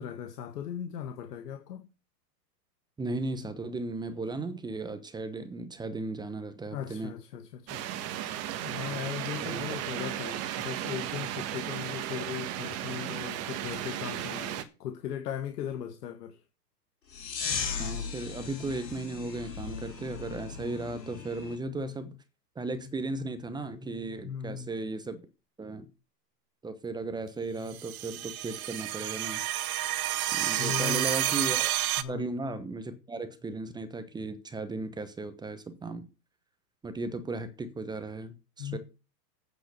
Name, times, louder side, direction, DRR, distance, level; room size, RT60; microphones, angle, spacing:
voice 1, 0.0-1.9 6.7-7.9 8.6-16.4 24.2-24.7 30.5-31.0 32.0-32.2 38.6-38.8, left 9 dB, 65° left, 1.6 m, -38 dB
voice 2, 3.0-7.2 8.9-9.0 9.4-9.6 17.8-22.2 22.5-25.2 25.6-25.9 26.6-29.4 30.3-31.8 32.1-36.1 36.8-38.8, right 2 dB, 10° right, 1.0 m, -36 dB
sound 1, 7.7-14.6, right 11 dB, 30° right, 1.4 m, -35 dB
sound 2, 17.1-21.6, left 6 dB, 85° left, 3.8 m, -37 dB
sound 3, 27.7-32.0, right 13 dB, 60° right, 1.1 m, -30 dB
8.8 x 7.9 x 6.8 m
hypercardioid pair, 130°, 50 cm